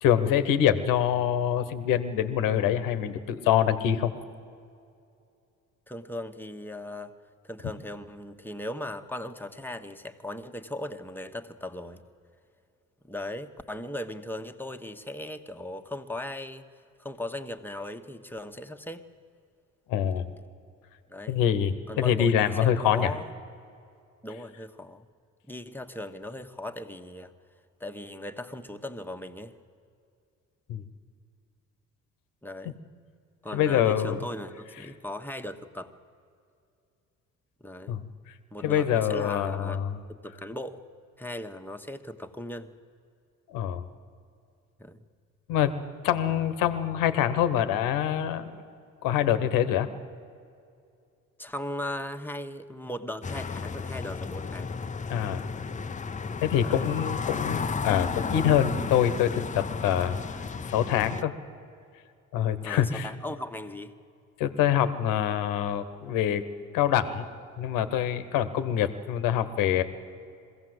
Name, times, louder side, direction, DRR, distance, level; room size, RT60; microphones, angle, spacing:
voice 1, 0.0-4.1 19.9-20.3 21.3-23.1 30.7-30.8 33.5-34.2 37.9-38.0 38.6-40.0 43.5-43.8 45.5-45.7 46.0-48.6 49.0-49.9 55.1-55.5 56.4-60.2 60.7-61.3 62.3-63.1 64.4-66.4 66.7-67.3 67.6-69.8, left 10 dB, 85° left, 11 dB, 1.2 m, -25 dB
voice 2, 5.9-7.1 7.4-12.0 13.0-16.7 17.0-19.0 21.1-21.4 21.9-23.3 24.2-25.1 25.5-27.3 27.8-29.5 32.4-32.8 33.4-35.9 37.6-38.0 38.5-39.8 40.1-40.8 41.2-42.7 44.8-45.0 51.4-54.8 56.6-56.9 62.6-63.9, left 1 dB, 5° left, 6 dB, 1.3 m, -38 dB
sound 1, 53.2-61.2, left 5 dB, 25° left, 0.6 m, -33 dB
22.0 x 16.0 x 7.9 m, 2.4 s
supercardioid pair, 70°, 32 cm